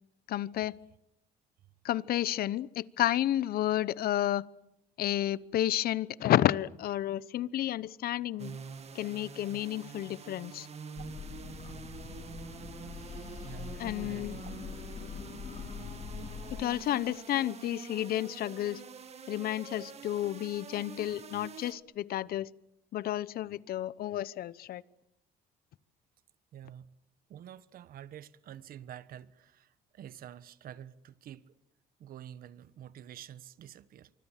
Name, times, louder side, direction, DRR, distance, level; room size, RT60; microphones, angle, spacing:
voice 1, 0.3-0.8 1.8-4.4 5.0-8.5 8.9-10.7 13.8-14.4 16.5-18.8 19.3-22.5 22.9-24.8, left 13 dB, 65° left, 0.9 m, -31 dB
sound 1, 8.4-21.7, right 5 dB, 40° right, 2.2 m, -46 dB
sound 2, 11.0-16.6, left 6 dB, 40° left, 3.4 m, -43 dB
voice 2, 13.4-14.5 26.5-27.0 27.3-31.5 32.0-34.1, right 10 dB, 60° right, 1.3 m, -48 dB
25.5 x 25.0 x 7.5 m
cardioid pair, 110°, 17 cm